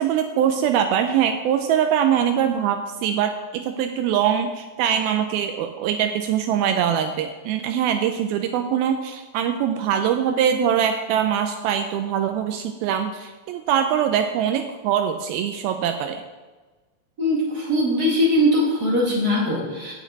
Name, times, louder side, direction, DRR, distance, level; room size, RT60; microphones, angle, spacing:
voice 1, 0.0-16.2, right 9 dB, 85° right, 6 dB, 2.5 m, -23 dB
voice 2, 17.2-19.9, left 1 dB, 25° right, -6 dB, 3.7 m, -21 dB
16.5 x 7.2 x 4.1 m, 1.3 s
omnidirectional pair, 4.3 m